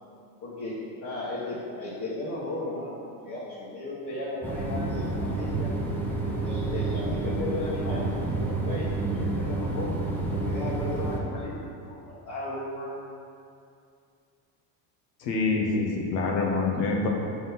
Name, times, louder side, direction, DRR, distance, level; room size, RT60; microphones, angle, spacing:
voice 1, 0.4-3.0 3.2-5.7 6.4-9.9 10.3-13.0, left 2 dB, 40° left, -8 dB, 1.4 m, -35 dB
sound 1, 4.4-11.2, right 2 dB, 5° left, 0.9 m, -29 dB
voice 2, 15.2-17.1, left 3 dB, 80° left, -1 dB, 1.2 m, -26 dB
5.3 x 3.9 x 5.8 m, 2.4 s
supercardioid pair, 115°, 49 cm